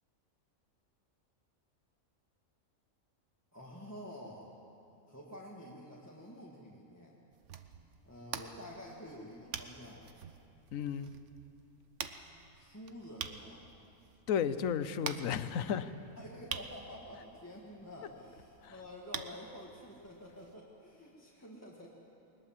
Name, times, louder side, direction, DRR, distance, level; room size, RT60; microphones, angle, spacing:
voice 1, 3.5-4.5 5.1-7.1 8.0-10.1 12.5-13.7 16.2-21.9, equal, 10° left, -4 dB, 1.8 m, -49 dB
sound 1, 7.3-20.6, right 7 dB, 65° right, 1.1 m, -47 dB
voice 2, 10.7-11.1 14.3-15.9 18.6-18.7, left 8 dB, 75° left, 13 dB, 1.2 m, -33 dB
21.0 x 20.0 x 7.4 m, 2.8 s
omnidirectional pair, 1.4 m